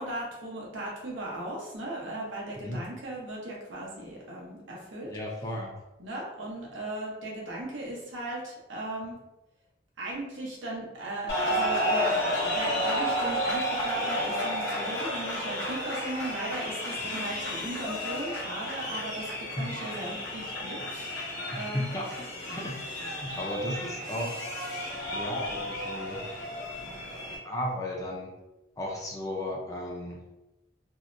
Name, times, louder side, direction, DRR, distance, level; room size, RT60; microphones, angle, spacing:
voice 1, 0.0-5.1 6.0-9.2 10.0-21.9, right 1 dB, 90° right, -3 dB, 0.8 m, -37 dB
voice 2, 5.0-5.8 17.2-17.3 21.1-22.1 22.4-24.4 25.1-26.2 27.4-28.3 28.8-30.2, left 1 dB, 20° left, -2 dB, 0.4 m, -35 dB
sound 1, 11.3-27.4, equal, 65° left, 0.8 m, -32 dB
2.7 x 2.1 x 2.5 m, 0.99 s
head